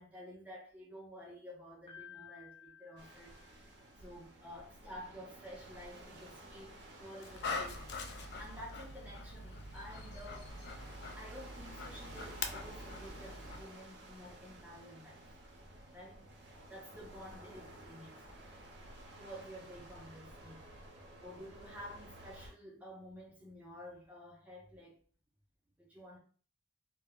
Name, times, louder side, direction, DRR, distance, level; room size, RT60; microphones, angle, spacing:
voice 1, 0.0-3.7 4.0-7.8 8.4-10.5 11.1-15.3 15.9-16.3 16.7-18.2 19.2-20.7 21.2-25.0 25.8-26.2, equal, 10° right, 0.6 m, -51 dB
Piano, 1.9-4.0, left 9 dB, 25° left, 0.7 m, -55 dB
sound 1, 3.0-22.5, right 1 dB, 65° right, 0.6 m, -54 dB
Dog, 7.2-13.6, left 3 dB, 60° left, 0.3 m, -43 dB
2.2 x 2.0 x 3.4 m
head